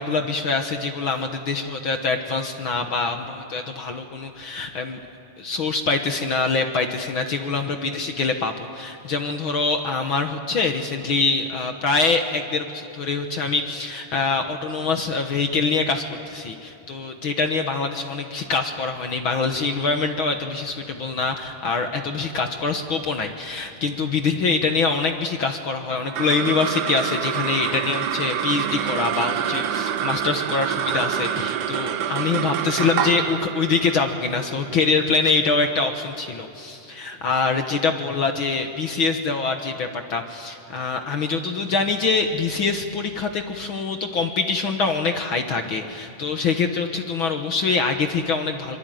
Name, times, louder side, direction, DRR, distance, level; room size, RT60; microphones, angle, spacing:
voice 1, 0.0-5.0 5.4-48.8, left 4 dB, 55° left, 5 dB, 1.4 m, -24 dB
sound 1, 25.9-36.5, right 9 dB, 85° right, 1.3 m, -27 dB
25.0 x 24.0 x 9.2 m, 2.9 s
omnidirectional pair, 3.9 m